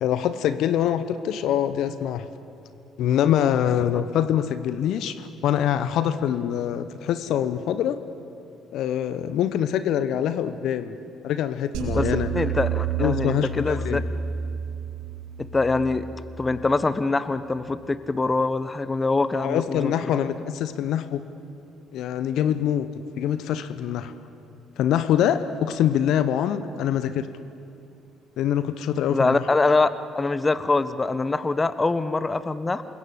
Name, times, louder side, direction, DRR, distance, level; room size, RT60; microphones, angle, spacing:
voice 1, 0.0-2.3 3.0-8.0 8.7-10.9 11.2-12.3 13.0-14.0 19.3-21.2 21.9-22.9 23.2-24.1 24.8-27.3 28.4-29.4, left 10 dB, 65° left, 12 dB, 1.1 m, -24 dB
sound 1, 11.7-17.0, right 7 dB, 70° right, 6.7 m, -30 dB
voice 2, 11.9-14.0 15.4-16.0 16.4-20.2 29.1-29.9 30.1-32.8, left 3 dB, 25° left, 13 dB, 1.3 m, -24 dB
27.5 x 22.0 x 8.8 m, 2.6 s
hypercardioid pair, 50°, 0 cm